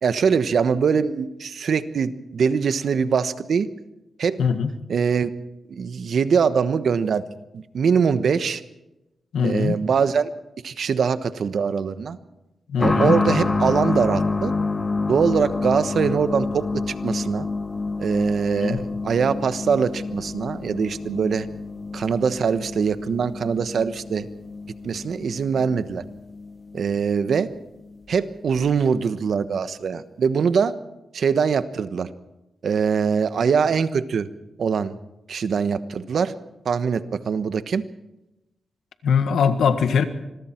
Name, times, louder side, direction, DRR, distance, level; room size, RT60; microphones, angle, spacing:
voice 1, 0.0-3.7 4.2-4.4 4.9-5.3 5.7-7.2 7.5-8.6 9.4-10.3 10.6-12.2 12.8-14.5 15.1-17.5 18.0-21.5 21.9-24.3 24.8-26.0 26.7-27.5 28.1-30.7 31.1-32.1 32.6-34.3 34.6-34.9 35.3-36.3 36.6-37.8, right 6 dB, 70° right, 12 dB, 1.2 m, -22 dB
voice 2, 4.4-4.7 9.3-9.8 12.7-13.2 18.6-18.8 39.0-40.0, left 6 dB, 90° left, 9 dB, 1.7 m, -21 dB
sound 1, 12.8-27.2 27.5-27.6 28.6-28.7, left 3 dB, 30° left, 1.8 m, -28 dB
26.5 x 22.0 x 4.5 m, 0.96 s
cardioid pair, 85°, 0 cm